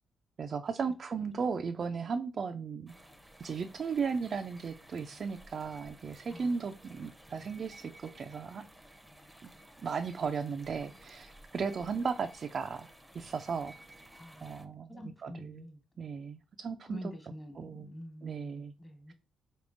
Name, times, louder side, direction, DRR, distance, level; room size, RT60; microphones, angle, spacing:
voice 1, 0.4-2.9 3.4-8.6 9.4-9.5 9.8-12.9 13.1-13.7 14.4-15.6 16.0-17.1 17.6-17.9 18.2-18.7, right 5 dB, 50° right, 0.3 m, -36 dB
sound 1, 2.9-14.7, right 1 dB, 5° right, 0.6 m, -55 dB
voice 2, 14.1-15.8 16.8-19.1, left 1 dB, 25° left, 1.3 m, -47 dB
4.1 x 3.5 x 2.5 m
cardioid pair, 80°, 0 cm